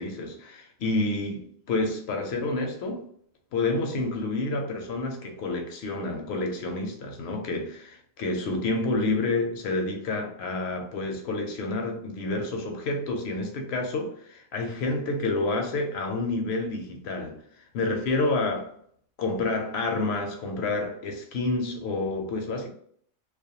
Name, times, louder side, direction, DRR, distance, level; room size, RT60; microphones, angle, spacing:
voice 1, 0.0-3.1 3.5-17.4 17.7-18.7 19.2-22.7, left 2 dB, 75° left, 0.8 m, -29 dB
2.3 x 2.1 x 2.7 m
omnidirectional pair, 1.1 m